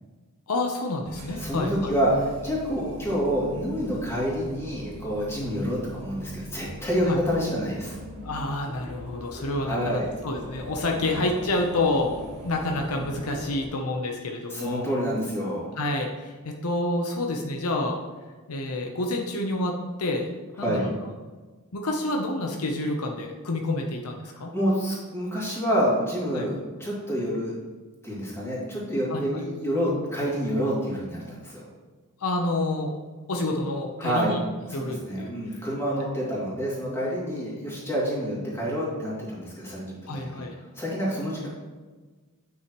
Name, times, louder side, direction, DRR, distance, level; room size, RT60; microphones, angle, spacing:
voice 1, 0.5-1.9 7.1-7.2 8.2-14.9 15.8-18.0 18.5-20.9 21.7-24.5 26.3-26.5 29.1-29.4 32.2-33.0 33.3-34.4 34.7-35.3 36.0-36.1 40.1-40.6, left 2 dB, 75° left, 2 dB, 0.8 m, -28 dB
sound 1, 1.0-13.7, equal, 75° right, 1.7 m, -41 dB
voice 2, 1.4-8.0 9.7-10.1 14.5-15.7 20.6-20.9 24.3-27.5 28.0-31.6 34.0-34.4 34.7-40.5 40.7-41.5, equal, 10° left, -7 dB, 2.5 m, -28 dB
8.9 x 6.2 x 3.1 m, 1.3 s
head